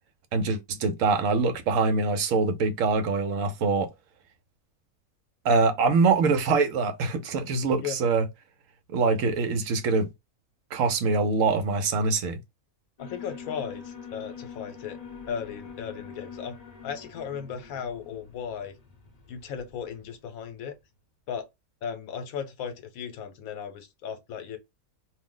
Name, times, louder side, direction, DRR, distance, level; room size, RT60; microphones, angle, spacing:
voice 1, 0.3-3.9 5.4-8.2 8.9-10.1 10.7-12.4, right 4 dB, 70° right, 0.9 m, -24 dB
voice 2, 13.0-15.0 15.3-16.6 16.8-18.7 19.3-20.7 21.3-21.5 21.8-24.6, left 7 dB, 75° left, 1.1 m, -36 dB
Alarm, 13.0-20.1, left 6 dB, 40° left, 0.6 m, -44 dB
2.6 x 2.0 x 3.6 m
omnidirectional pair, 1.5 m